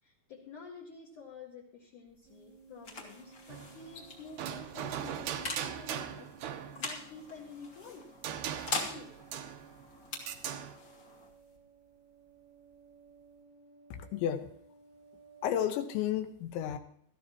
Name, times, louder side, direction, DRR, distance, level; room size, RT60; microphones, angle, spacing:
voice 1, 0.0-6.3 6.6-8.2 8.7-9.3, left 4 dB, 55° left, -3 dB, 2.6 m, -50 dB
sound 1, 2.1-13.4, left 2 dB, 40° left, 1.9 m, -44 dB
sound 2, 2.3-15.5, right 5 dB, 60° right, 1.9 m, -59 dB
sound 3, 3.5-3.9 4.4-7.0 8.2-9.8 10.3-10.7, right 9 dB, 85° right, 1.8 m, -39 dB
voice 2, 13.9-14.5 15.4-16.8, left 10 dB, 85° left, 8 dB, 3.4 m, -32 dB
19.0 x 13.5 x 2.9 m, 0.63 s
omnidirectional pair, 5.2 m